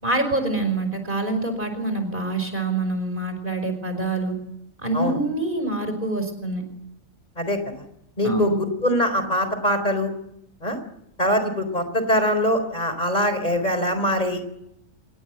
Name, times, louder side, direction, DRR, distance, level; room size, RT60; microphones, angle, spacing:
voice 1, 0.0-4.3 4.8-6.7 8.2-8.6, right 2 dB, 35° right, 8 dB, 5.7 m, -25 dB
voice 2, 7.4-7.8 8.2-10.1 10.6-10.8 11.2-14.4, equal, 30° left, 9 dB, 4.1 m, -23 dB
27.0 x 22.5 x 8.0 m, 0.80 s
omnidirectional pair, 1.4 m